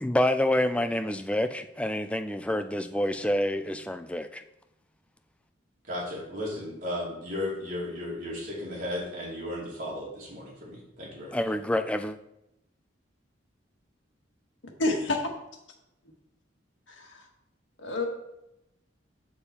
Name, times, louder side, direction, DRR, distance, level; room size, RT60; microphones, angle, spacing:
voice 1, 0.0-4.4 11.3-12.2, left 1 dB, 5° left, 8 dB, 0.4 m, -27 dB
voice 2, 5.9-11.4, left 1 dB, 45° right, -5 dB, 3.0 m, -35 dB
voice 3, 14.8-15.3 16.9-17.2 17.8-18.1, left 2 dB, 80° left, 1 dB, 1.6 m, -28 dB
6.9 x 6.8 x 4.3 m, 0.86 s
head